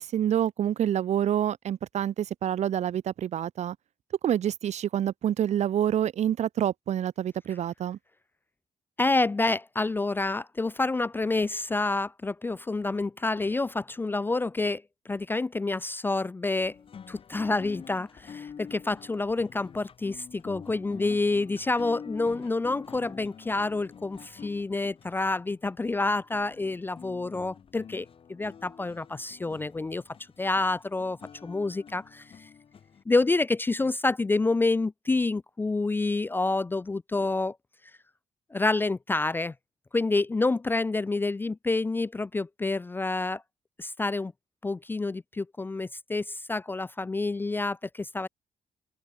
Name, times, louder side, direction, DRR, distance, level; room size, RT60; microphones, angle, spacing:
voice 1, 0.0-3.8 4.2-8.0, right 10 dB, 55° right, 0.8 m, -27 dB
voice 2, 9.0-16.8 17.1-30.0 30.4-32.5 33.1-37.6 38.5-39.5 39.9-43.4 43.8-44.3 44.6-48.3, left 3 dB, 15° left, 0.4 m, -28 dB
sound 1, 16.5-33.0, left 7 dB, 40° left, 4.1 m, -47 dB
wide cardioid pair, 160°, 14 cm